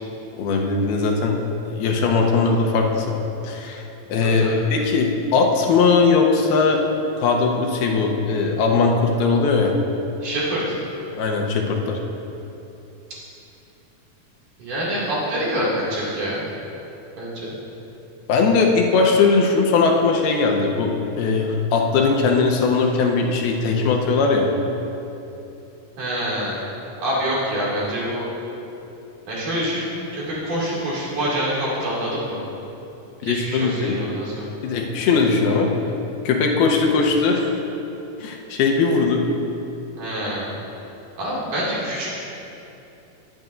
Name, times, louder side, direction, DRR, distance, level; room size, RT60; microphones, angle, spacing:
voice 1, 0.4-1.3 1.7-3.8 4.1-6.8 7.2-9.7 11.2-12.0 18.3-24.5 33.2-34.0 34.6-35.7 36.2-37.5 38.2-39.3, left 4 dB, 85° left, 1 dB, 2.8 m, -19 dB
voice 2, 4.2-4.6 10.2-10.6 14.6-16.4 17.1-17.5 26.0-26.6 27.0-28.3 29.3-29.9 30.1-32.4 33.2-34.6 40.0-40.5 41.2-42.1, equal, 55° right, -7 dB, 3.8 m, -26 dB
20.0 x 9.1 x 2.6 m, 2.9 s
omnidirectional pair, 4.4 m